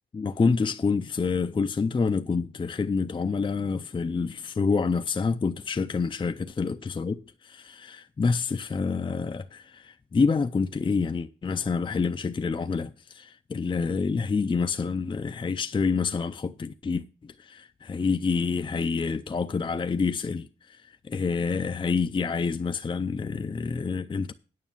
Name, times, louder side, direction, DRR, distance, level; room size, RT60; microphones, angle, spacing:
voice 1, 0.1-24.3, left 4 dB, 25° left, 0.4 m, -27 dB
9.4 x 6.4 x 7.2 m
wide cardioid pair, 115°, 21 cm